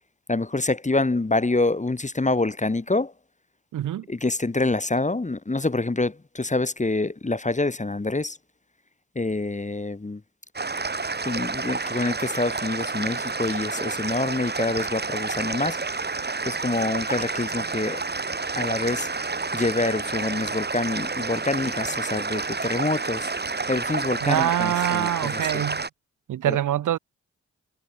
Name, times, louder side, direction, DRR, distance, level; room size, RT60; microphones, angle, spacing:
voice 1, 0.3-3.1 4.1-8.4 9.2-10.2 11.3-15.8 16.5-18.0 18.6-19.1 19.5-23.3 23.7-25.6 26.4-26.6, left 2 dB, 20° left, 2.0 m, -26 dB
voice 2, 3.7-4.1 24.2-25.9 26.3-27.0, right 12 dB, 70° right, 1.0 m, -25 dB
sound 1, 10.5-25.9, right 3 dB, 30° right, 2.4 m, -29 dB
supercardioid pair, 40°, 32 cm